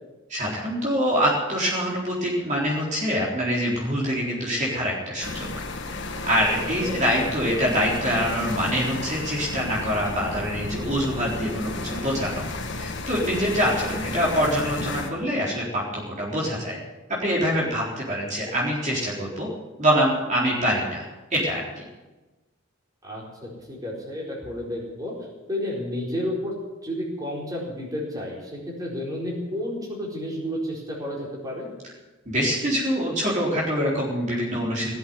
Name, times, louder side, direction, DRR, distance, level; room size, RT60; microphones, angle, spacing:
voice 1, 0.3-5.5 6.2-12.5 12.8-16.8 17.1-19.5 19.8-21.0 21.3-21.8 32.3-34.9, equal, 40° right, -4 dB, 4.0 m, -25 dB
sound 1, 5.2-15.1, left 2 dB, 60° left, 1.8 m, -33 dB
voice 2, 23.0-25.1 25.5-26.5 26.8-31.7, left 1 dB, 20° right, -4 dB, 4.5 m, -31 dB
18.0 x 8.2 x 9.5 m, 1.1 s
head